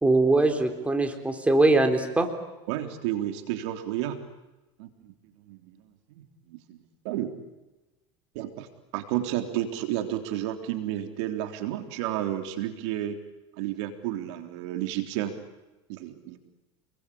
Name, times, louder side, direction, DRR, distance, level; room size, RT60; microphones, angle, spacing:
voice 1, 0.0-2.3, right 2 dB, 10° right, 5 dB, 3.8 m, -22 dB
voice 2, 2.7-4.2 4.8-5.1 5.5-5.8 6.1-6.8 7.0-7.3 8.4-8.7 8.9-13.2 13.6-15.3 15.9-16.4, right 12 dB, 70° right, 6 dB, 3.6 m, -31 dB
29.0 x 22.0 x 8.7 m, 1.1 s
supercardioid pair, 120°, 15 cm